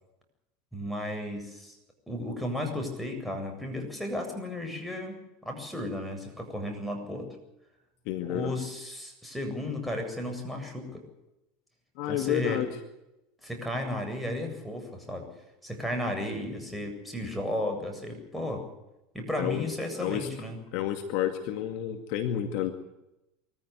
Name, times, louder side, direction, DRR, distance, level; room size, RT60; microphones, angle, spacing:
voice 1, 0.7-1.8 2.1-5.2 5.4-7.3 8.2-11.0 12.1-12.6 13.4-15.3 15.6-18.6 19.1-20.6, left 1 dB, ahead, 3 dB, 7.9 m, -34 dB
voice 2, 8.1-8.5 12.0-12.7 19.4-19.7 20.0-20.3 20.7-22.7, left 11 dB, 60° left, 7 dB, 2.2 m, -30 dB
23.5 x 15.0 x 9.6 m, 0.91 s
hypercardioid pair, 80°, 0 cm